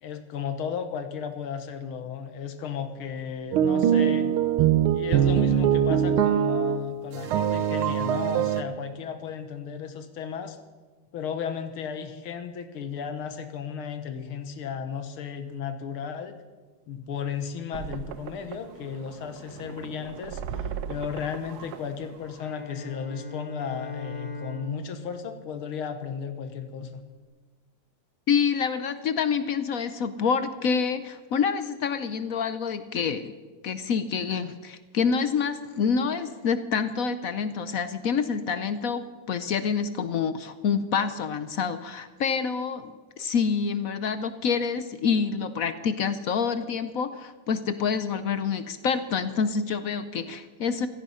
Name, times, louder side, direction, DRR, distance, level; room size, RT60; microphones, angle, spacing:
voice 1, 0.0-4.3 4.9-10.6 11.1-16.4 16.9-27.0, left 7 dB, 85° left, 9 dB, 2.0 m, -35 dB
sound 1, 3.5-6.9 7.1-8.6, right 9 dB, 80° right, 1.7 m, -22 dB
sound 2, 17.7-22.7, right 8 dB, 65° right, 1.1 m, -39 dB
Bowed string instrument, 22.3-26.5, left 2 dB, 25° left, 3.9 m, -40 dB
voice 2, 28.3-33.3 33.6-50.9, left 6 dB, 65° left, 12 dB, 0.8 m, -27 dB
16.5 x 14.5 x 5.6 m, 1.3 s
omnidirectional pair, 2.3 m